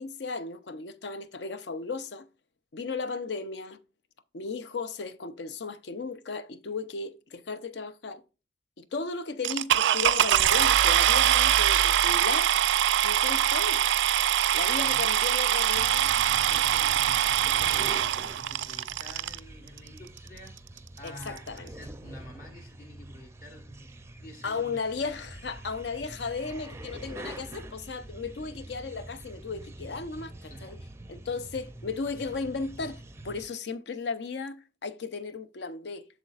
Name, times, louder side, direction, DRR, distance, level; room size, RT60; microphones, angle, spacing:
voice 1, 0.0-2.3 2.7-3.8 4.3-8.2 8.8-12.5 13.0-13.8 14.5-16.1 21.0-21.7 24.4-30.8 31.1-36.1, left 4 dB, 65° left, 0.5 m, -35 dB
sound 1, 9.4-19.4 20.2-20.3 20.8-20.9 21.1-21.4, right 11 dB, 85° right, 0.3 m, -23 dB
sound 2, 15.7-33.4, right 1 dB, 15° right, 0.5 m, -45 dB
voice 2, 16.3-18.1 18.3-20.6 21.0-24.8 30.5-30.8, left 1 dB, 50° left, 1.3 m, -48 dB
8.0 x 6.8 x 2.4 m
head